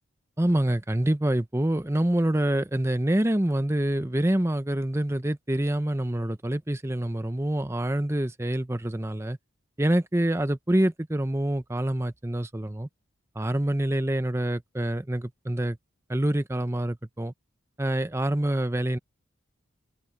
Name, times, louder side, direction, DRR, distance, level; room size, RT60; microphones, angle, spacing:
voice 1, 0.4-9.4 9.8-12.9 13.4-15.8 16.1-17.3 17.8-19.0, right 1 dB, 15° right, 0.6 m, -26 dB
open air
head